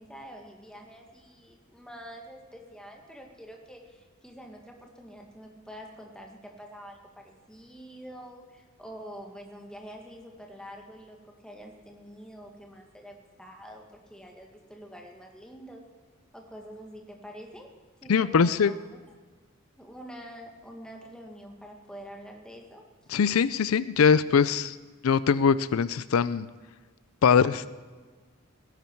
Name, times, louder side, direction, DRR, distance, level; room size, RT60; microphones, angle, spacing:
voice 1, 0.0-15.8 16.3-17.7 18.0-18.9 19.8-22.8, equal, 5° left, 1 dB, 1.8 m, -46 dB
voice 2, 18.1-18.7 23.1-24.8 25.0-26.5 27.2-27.7, left 6 dB, 80° left, 16 dB, 0.4 m, -22 dB
17.5 x 11.0 x 4.6 m, 1.4 s
head